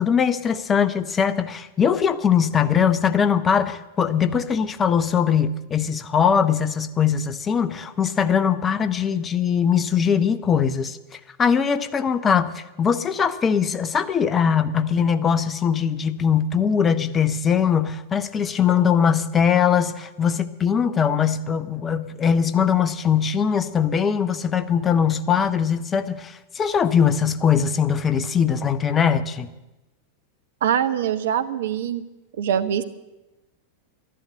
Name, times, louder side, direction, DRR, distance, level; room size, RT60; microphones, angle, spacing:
voice 1, 0.0-29.5, left 7 dB, 20° left, 12 dB, 0.7 m, -21 dB
voice 2, 30.6-32.0 32.4-32.8, right 9 dB, 60° right, 11 dB, 0.9 m, -23 dB
13.0 x 11.5 x 7.8 m, 1.0 s
figure-of-eight pair, 90°, 0 cm